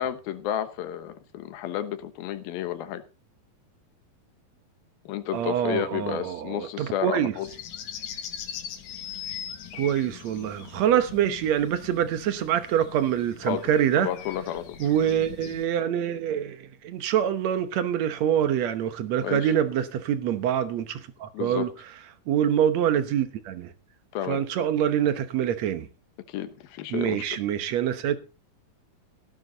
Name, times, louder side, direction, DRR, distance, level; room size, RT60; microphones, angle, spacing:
voice 1, 0.0-3.0 5.1-7.5 13.4-13.7 14.0-14.8 19.2-19.5 21.3-21.8 24.1-24.4 26.3-27.4, left 11 dB, 90° left, 3.0 m, -31 dB
voice 2, 5.3-7.3 9.8-14.1 14.8-21.7 22.3-23.7 24.3-25.9 26.9-28.2, right 10 dB, 65° right, 1.9 m, -25 dB
sound 1, 7.4-15.7, left 9 dB, 60° left, 2.4 m, -41 dB
17.5 x 9.2 x 4.0 m
omnidirectional pair, 4.1 m